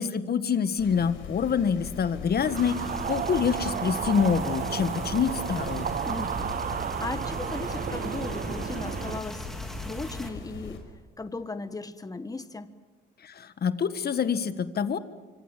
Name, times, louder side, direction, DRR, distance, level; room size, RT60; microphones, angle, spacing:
voice 1, 0.0-5.9 13.2-15.0, left 7 dB, 50° left, 1.6 m, -26 dB
sound 1, 0.8-10.8, left 6 dB, 85° left, 5.2 m, -41 dB
sound 2, 2.3-9.2, right 8 dB, 45° right, 0.7 m, -33 dB
sound 3, 2.6-10.3, equal, ahead, 3.1 m, -39 dB
voice 2, 6.0-9.5 9.8-10.8 11.2-12.7, left 3 dB, 20° left, 1.4 m, -37 dB
26.0 x 24.5 x 7.6 m
cardioid pair, 90°, 20 cm